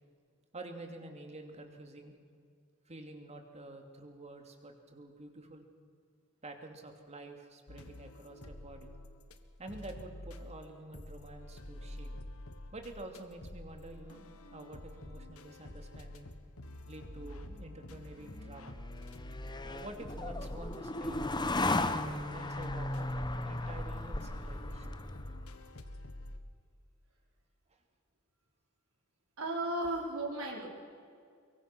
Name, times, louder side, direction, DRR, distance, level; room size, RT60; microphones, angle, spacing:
voice 1, 0.5-2.1 2.9-5.7 6.4-8.9 9.6-12.2 12.7-16.3 16.9-18.8 19.6-21.2 22.0-25.0, right 2 dB, 30° right, 4 dB, 2.7 m, -48 dB
sound 1, 7.7-9.4 9.7-26.4, left 1 dB, 85° left, 1.6 m, -48 dB
sound 2, 18.2-25.6, left 2 dB, 20° left, 1.0 m, -36 dB
voice 2, 29.4-30.7, right 1 dB, 75° right, -1 dB, 4.9 m, -35 dB
24.0 x 23.0 x 6.1 m, 2.2 s
head